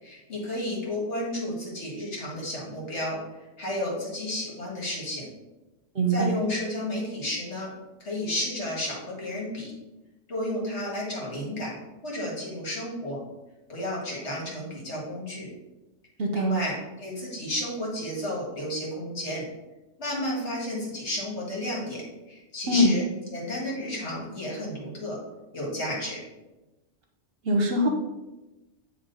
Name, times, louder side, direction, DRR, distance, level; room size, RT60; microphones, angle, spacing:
voice 1, 0.0-5.3 6.1-7.7 8.0-9.7 10.3-11.7 12.0-13.2 13.7-15.5 16.3-19.4 20.0-23.0 23.3-25.2 25.5-26.2, left 1 dB, 65° left, -4 dB, 2.0 m, -32 dB
voice 2, 5.9-6.3 16.2-16.6 22.7-23.0 27.4-27.9, equal, 55° right, 2 dB, 0.9 m, -22 dB
8.6 x 3.1 x 3.9 m, 1.1 s
omnidirectional pair, 1.3 m